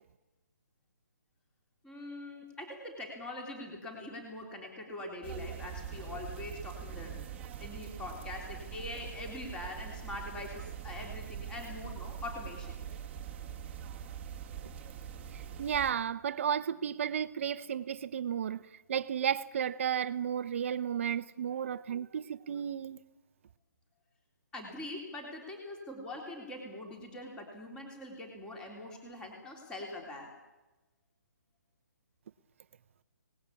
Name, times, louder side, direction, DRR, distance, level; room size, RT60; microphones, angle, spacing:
voice 1, 1.8-7.2 7.6-12.8 24.5-30.3, left 2 dB, 10° left, 3.5 m, -43 dB
sound 1, 5.2-15.9, right 8 dB, 10° right, 2.0 m, -43 dB
voice 2, 15.6-18.6 18.9-23.0, right 8 dB, 40° right, 1.0 m, -33 dB
27.5 x 19.5 x 8.6 m
hypercardioid pair, 165°, 10 cm